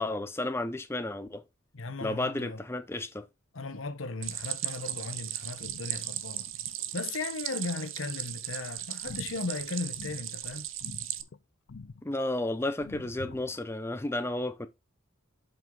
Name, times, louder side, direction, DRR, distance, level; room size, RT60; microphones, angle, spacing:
voice 1, 0.0-1.4 2.0-3.3 12.0-14.7, left 2 dB, 15° left, 0.6 m, -32 dB
voice 2, 1.7-2.6 3.5-6.5 6.9-10.7, left 3 dB, 85° left, 1.0 m, -37 dB
Stream, 4.2-11.2, right 13 dB, 85° right, 0.8 m, -37 dB
sound 1, 4.9-5.3 5.6-7.3 9.0-10.5 10.8-11.4 11.7-12.4 12.8-13.7, left 4 dB, 65° left, 0.5 m, -47 dB
7.6 x 5.7 x 3.8 m
head